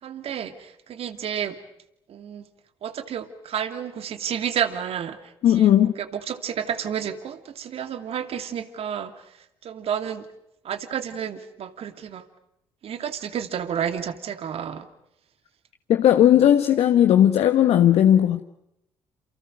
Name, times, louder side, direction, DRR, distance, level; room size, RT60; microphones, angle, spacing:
voice 1, 0.0-1.6 2.1-2.5 2.8-10.3 10.6-12.3 12.8-14.9 16.3-16.5, right 8 dB, 55° right, 2.6 m, -31 dB
voice 2, 5.4-5.9 15.9-18.4, left 11 dB, 65° left, 1.3 m, -17 dB
28.5 x 28.0 x 6.5 m
hypercardioid pair, 50°, 12 cm